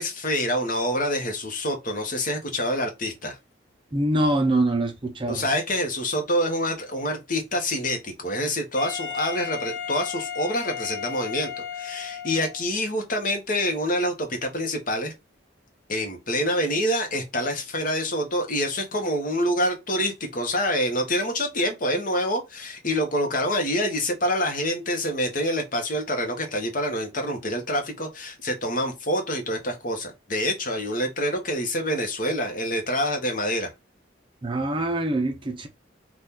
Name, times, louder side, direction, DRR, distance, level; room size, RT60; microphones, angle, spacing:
voice 1, 0.0-3.4 5.3-15.1 15.9-33.7, equal, 45° left, 0.9 m, -26 dB
voice 2, 3.9-5.4 34.4-35.7, right 1 dB, 25° right, 0.6 m, -24 dB
Wind instrument woodwind instrument, 8.7-12.7, left 8 dB, 75° left, 0.8 m, -34 dB
2.8 x 2.4 x 3.5 m
head